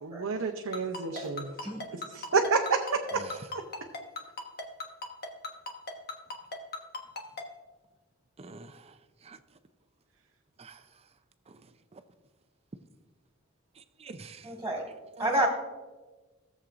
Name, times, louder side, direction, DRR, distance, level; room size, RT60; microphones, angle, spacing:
voice 1, 0.0-1.5 1.9-3.2 3.5-3.6, right 4 dB, 65° right, 2 dB, 0.7 m, -29 dB
Ringtone, 0.7-7.4, left 3 dB, 45° left, 1.3 m, -37 dB
voice 2, 8.4-8.9 9.2-9.4 10.6-10.8 11.5-11.6 11.9-12.0 13.8-14.5 15.2-15.5, right 5 dB, 30° right, 10 dB, 0.5 m, -41 dB
voice 3, 14.4-14.8 15.2-15.5, right 1 dB, 10° right, -2 dB, 1.8 m, -29 dB
16.5 x 7.4 x 2.5 m, 1.3 s
head